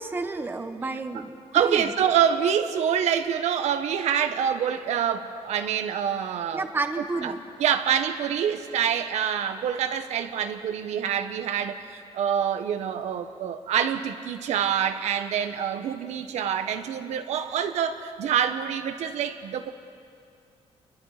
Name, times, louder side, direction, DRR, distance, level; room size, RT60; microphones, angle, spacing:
voice 1, 0.0-1.9 6.5-7.4, right 3 dB, 20° right, 7 dB, 1.1 m, -31 dB
voice 2, 1.5-6.6 7.2-7.3 7.6-19.7, right 8 dB, 90° right, 8 dB, 1.1 m, -26 dB
28.0 x 22.5 x 5.0 m, 2.4 s
cardioid pair, 150°, 11 cm